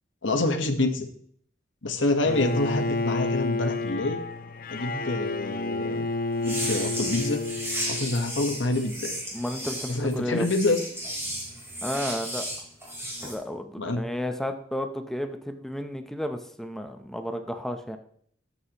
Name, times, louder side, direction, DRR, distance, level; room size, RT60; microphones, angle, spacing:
voice 1, 0.2-1.1 1.8-4.2 4.7-6.0 6.4-7.4 7.9-9.2 9.9-10.8 13.8-14.0, left 2 dB, 80° left, 5 dB, 1.3 m, -26 dB
Bowed string instrument, 2.3-8.4, left 3 dB, 50° left, 0.7 m, -30 dB
sound 1, 6.4-13.3, equal, 15° right, 4.1 m, -34 dB
voice 2, 9.3-10.5 11.8-12.5 13.2-18.0, equal, ahead, 6 dB, 0.8 m, -32 dB
13.0 x 8.3 x 3.0 m, 0.62 s
head